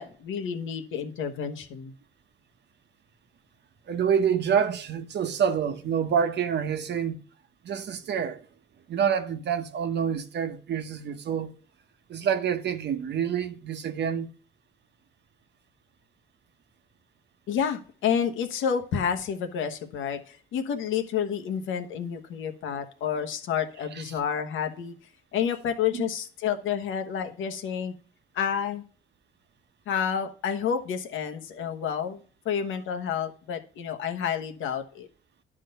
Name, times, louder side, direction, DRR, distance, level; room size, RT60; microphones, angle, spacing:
voice 1, 0.0-1.9 17.5-24.9 25.3-27.9 28.3-28.8 29.9-35.1, left 8 dB, 85° left, 1.2 m, -29 dB
voice 2, 3.9-7.2 7.6-8.4 8.9-11.5 12.1-14.3 23.9-24.0 25.9-26.1, right 7 dB, 60° right, 1.0 m, -27 dB
11.0 x 3.7 x 6.7 m
cardioid pair, 90°, 20 cm